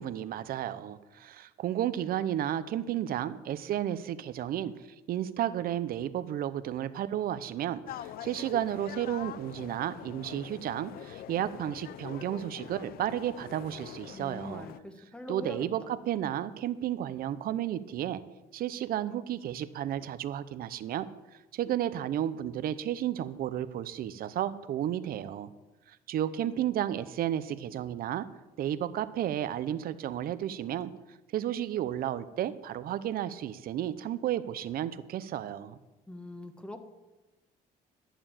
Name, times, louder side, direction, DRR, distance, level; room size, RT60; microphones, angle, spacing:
voice 1, 0.0-4.7 5.1-14.7 15.3-18.2 18.5-21.1 21.5-25.5 25.9-28.3 28.6-30.9 31.3-35.8, right 11 dB, 60° right, 13 dB, 0.7 m, -32 dB
sound 1, 7.9-14.8, left 12 dB, 60° left, 0.5 m, -44 dB
voice 2, 14.1-15.7 36.1-36.8, left 1 dB, 5° left, 7 dB, 1.4 m, -42 dB
11.0 x 7.0 x 9.0 m, 1.1 s
cardioid pair, 110°, 17 cm